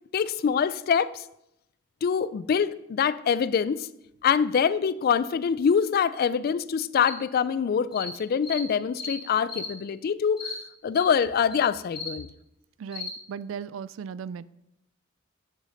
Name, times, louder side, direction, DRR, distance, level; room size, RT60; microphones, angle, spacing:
voice 1, 0.1-1.2 2.0-3.9 4.2-10.6 10.8-12.3, left 7 dB, 50° left, 17 dB, 0.3 m, -25 dB
sound 1, 7.1-7.2 7.9-8.1 8.4-8.6 9.0-9.2 9.5-9.7 10.4-10.6 10.9-11.0 11.5-11.6 11.9-12.1 12.9-13.1, left 4 dB, 25° left, 1.8 m, -35 dB
voice 2, 12.8-14.5, right 7 dB, 70° right, 18 dB, 0.3 m, -37 dB
6.6 x 6.4 x 5.0 m, 0.82 s
head